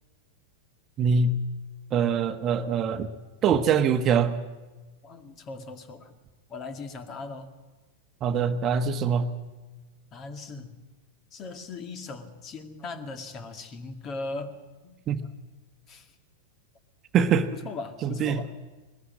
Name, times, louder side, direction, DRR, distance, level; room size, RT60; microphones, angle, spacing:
voice 1, 1.0-1.4 1.9-3.1 3.4-4.4 8.2-9.3 15.1-15.2 17.1-17.5 18.0-18.4, right 6 dB, 35° right, 9 dB, 1.1 m, -23 dB
voice 2, 5.0-6.1 6.5-7.5 10.1-10.8 11.3-14.6 14.8-15.0 15.9-16.1 17.5-18.5, left 3 dB, 35° left, 8 dB, 2.0 m, -38 dB
20.5 x 14.0 x 9.5 m, 1.2 s
hypercardioid pair, 100°, 0 cm